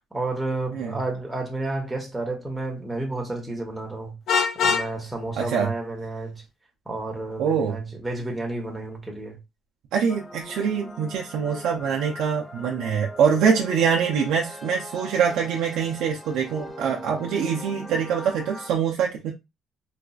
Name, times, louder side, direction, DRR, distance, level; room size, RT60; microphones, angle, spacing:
voice 1, 0.1-4.2 4.6-6.4 6.9-9.4, right 2 dB, 10° right, 1.1 m, -31 dB
Vehicle horn car horn honking, 4.3-4.9, left 6 dB, 60° left, 0.5 m, -22 dB
voice 2, 5.4-5.7 7.4-7.8 9.9-19.3, right 7 dB, 75° right, 0.6 m, -24 dB
sound 1, 10.1-18.7, left 1 dB, 10° left, 0.5 m, -41 dB
4.1 x 2.4 x 2.4 m
cardioid pair, 115°, 0 cm